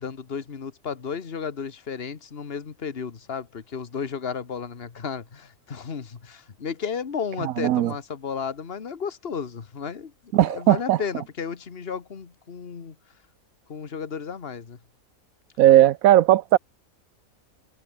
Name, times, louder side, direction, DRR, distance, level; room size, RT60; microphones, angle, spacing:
voice 1, 0.0-10.1 10.5-13.0 13.7-14.8, left 6 dB, 45° left, 1.6 m, -33 dB
voice 2, 7.6-7.9 10.3-11.0 15.6-16.6, right 13 dB, 80° right, 1.1 m, -17 dB
omnidirectional pair, 1.5 m